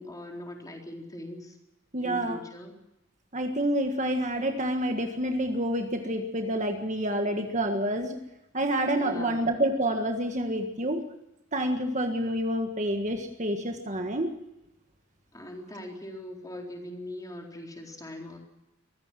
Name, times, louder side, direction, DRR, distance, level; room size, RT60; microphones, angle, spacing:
voice 1, 0.0-1.6 2.0-2.7 9.0-9.4 15.3-18.4, left 1 dB, 15° left, 1 dB, 4.1 m, -41 dB
voice 2, 1.9-2.4 3.3-8.2 8.5-11.0 11.5-14.3, right 1 dB, 35° right, 5 dB, 1.7 m, -28 dB
23.5 x 15.5 x 7.6 m, 0.89 s
head